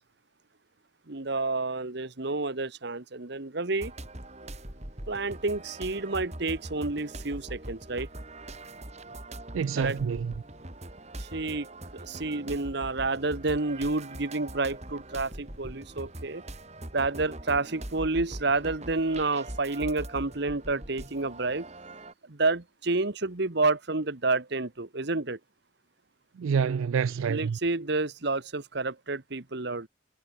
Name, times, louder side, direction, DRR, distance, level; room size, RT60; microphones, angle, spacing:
voice 1, 1.1-3.9 5.1-8.1 9.8-10.0 11.2-11.7 11.9-16.4 16.9-21.7 22.3-25.4 27.3-29.9, right 3 dB, 55° right, 1.3 m, -29 dB
sound 1, 3.8-22.1, right 1 dB, 35° right, 3.5 m, -42 dB
voice 2, 9.5-10.3 26.4-27.6, right 6 dB, 80° right, 0.4 m, -27 dB
head